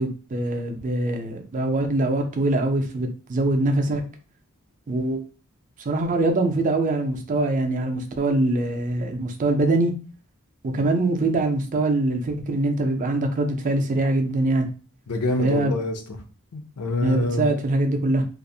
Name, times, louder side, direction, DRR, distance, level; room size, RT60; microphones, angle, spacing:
voice 1, 0.0-4.0 4.9-5.2 5.9-9.9 10.6-14.7 15.4-15.7 17.0-18.2, right 2 dB, 35° right, 0.4 m, -23 dB
voice 2, 15.1-16.2 16.5-17.5, left 2 dB, 85° left, 0.5 m, -26 dB
2.4 x 2.0 x 2.6 m
head